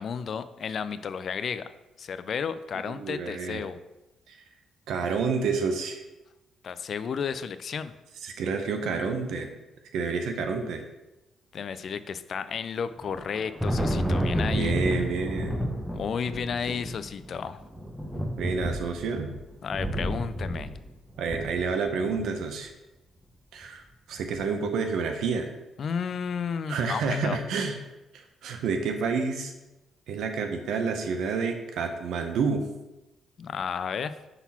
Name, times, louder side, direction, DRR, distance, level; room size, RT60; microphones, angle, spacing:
voice 1, 0.0-1.6 2.0-3.8 6.6-7.9 11.5-14.7 15.9-17.6 19.6-20.8 25.8-27.4 33.4-34.1, left 6 dB, 55° left, 12 dB, 0.3 m, -32 dB
voice 2, 2.9-3.6 4.3-4.4 4.9-6.0 8.2-9.5 9.9-10.8 14.5-15.6 18.4-19.3 21.2-22.7 23.5-23.8 24.1-25.5 26.7-27.8 28.1-29.5 30.1-32.6, right 5 dB, 80° right, 6 dB, 0.7 m, -29 dB
Thunder, 13.0-22.4, equal, ahead, 0.8 m, -31 dB
5.8 x 4.0 x 4.2 m, 1.0 s
cardioid pair, 90°, 0 cm